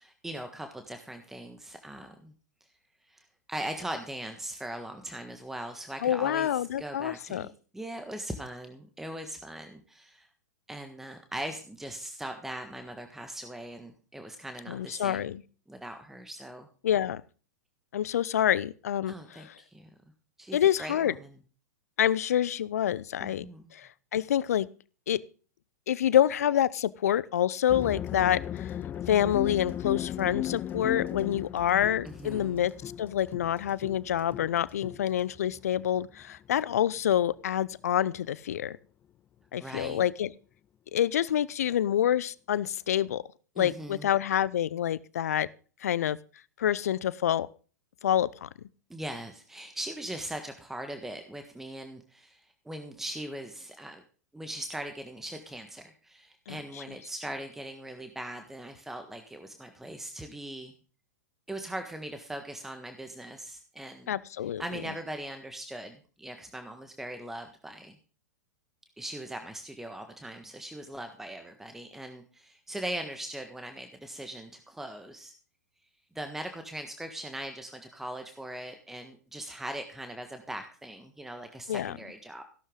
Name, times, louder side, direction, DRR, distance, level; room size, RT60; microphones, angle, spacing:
voice 1, 0.0-2.3 3.1-10.3 10.7-15.3 15.7-16.7 19.1-19.9 20.4-21.4 23.2-23.7 32.0-32.7 39.6-40.0 43.5-44.1 48.9-54.0 54.3-60.7 61.5-64.1 64.4-68.0 69.0-75.3 76.1-82.4, right 1 dB, 5° right, 6 dB, 1.5 m, -40 dB
voice 2, 6.0-7.5 14.7-15.4 16.8-17.2 17.9-19.5 20.5-21.1 22.0-23.5 23.7-24.7 25.1-25.2 25.9-28.7 29.1-32.7 33.0-38.8 39.5-40.3 40.9-43.2 43.6-45.5 45.8-46.2 46.6-47.5 48.0-48.5 56.5-56.8 64.1-64.6 81.7-81.9, left 10 dB, 60° left, 20 dB, 0.7 m, -27 dB
sound 1, 27.7-36.6, left 11 dB, 20° left, 0.5 m, -37 dB
16.0 x 12.0 x 3.8 m, 0.39 s
figure-of-eight pair, 100°, 9 cm